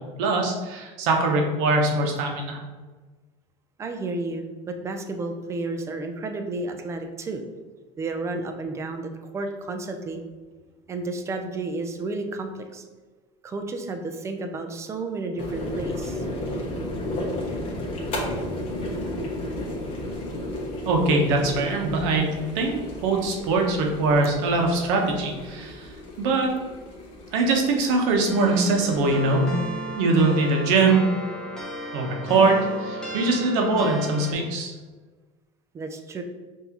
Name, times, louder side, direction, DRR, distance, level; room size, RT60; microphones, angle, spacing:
voice 1, 0.0-2.6 20.8-26.5 27.3-29.5 29.9-31.0 31.9-34.7, right 3 dB, 75° right, 1 dB, 0.9 m, -22 dB
voice 2, 3.8-7.4 8.0-10.2 10.9-12.8 13.4-16.2 35.7-36.2, right 2 dB, 20° right, 5 dB, 0.4 m, -32 dB
sound 1, 15.4-29.9, left 1 dB, 35° left, 1.2 m, -33 dB
sound 2, 28.3-34.3, right 1 dB, 5° left, 0.8 m, -34 dB
5.8 x 2.7 x 2.9 m, 1.3 s
cardioid pair, 145°, 16 cm